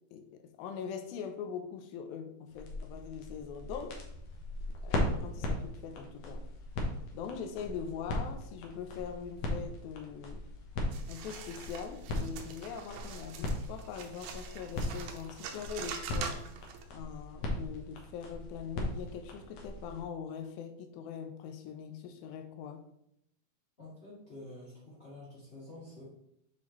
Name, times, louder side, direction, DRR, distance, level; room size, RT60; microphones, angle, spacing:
voice 1, 0.1-4.0 4.8-6.5 7.1-10.5 11.1-16.4 16.9-22.8, left 7 dB, 85° left, 6 dB, 2.5 m, -42 dB
sound 1, 2.5-20.0, left 1 dB, 65° left, 1.6 m, -38 dB
sound 2, 10.9-16.8, right 7 dB, 85° right, 2.5 m, -44 dB
voice 2, 23.8-26.0, left 1 dB, 20° left, -9 dB, 2.1 m, -49 dB
7.5 x 4.5 x 3.0 m, 0.77 s
omnidirectional pair, 4.2 m